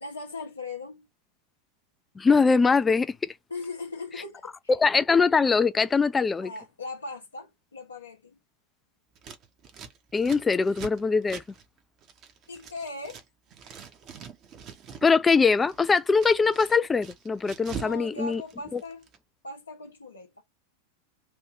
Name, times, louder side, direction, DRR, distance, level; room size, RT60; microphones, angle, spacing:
voice 1, 0.0-1.1 3.5-4.5 6.4-8.4 12.5-13.2 17.7-19.1 19.4-20.4, left 3 dB, 75° left, 0.8 m, -39 dB
voice 2, 2.2-3.1 4.7-6.5 10.1-11.4 15.0-18.4 18.7-18.8, left 4 dB, 15° left, 0.4 m, -22 dB
Scissors, 9.1-13.2 13.5-15.1 15.4-18.0 18.2-19.2, right 7 dB, 35° right, 0.9 m, -43 dB
3.2 x 2.6 x 4.4 m
figure-of-eight pair, 90°, 0 cm